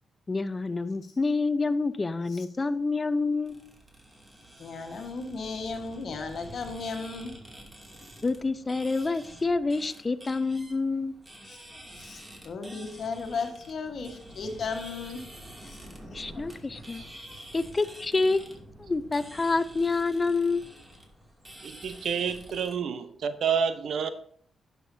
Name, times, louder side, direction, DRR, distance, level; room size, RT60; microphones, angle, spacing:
voice 1, 0.3-3.6 8.2-11.1 16.1-17.0 17.5-20.7, left 3 dB, 35° left, 14 dB, 0.6 m, -28 dB
sound 1, 3.4-22.7, right 1 dB, 20° right, 2.5 m, -48 dB
voice 2, 4.6-7.3 11.5-11.6 12.0-15.2 16.1-16.4, left 4 dB, 70° left, 5 dB, 1.4 m, -35 dB
voice 3, 21.6-24.1, right 7 dB, 75° right, 11 dB, 0.7 m, -29 dB
11.0 x 6.6 x 2.7 m, 0.62 s
supercardioid pair, 55°, 0 cm